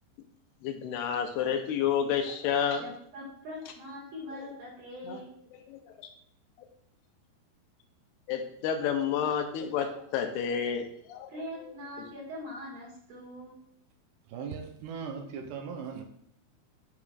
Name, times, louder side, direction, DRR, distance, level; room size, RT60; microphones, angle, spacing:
voice 1, 0.6-2.8 5.1-5.2 5.7-6.1 8.3-11.3, left 8 dB, 80° left, 5 dB, 2.6 m, -30 dB
voice 2, 2.7-5.3 11.3-13.6, left 1 dB, 55° right, -4 dB, 3.2 m, -42 dB
voice 3, 14.3-16.0, right 6 dB, 80° right, 4 dB, 2.8 m, -38 dB
8.3 x 7.0 x 2.5 m, 0.68 s
omnidirectional pair, 4.9 m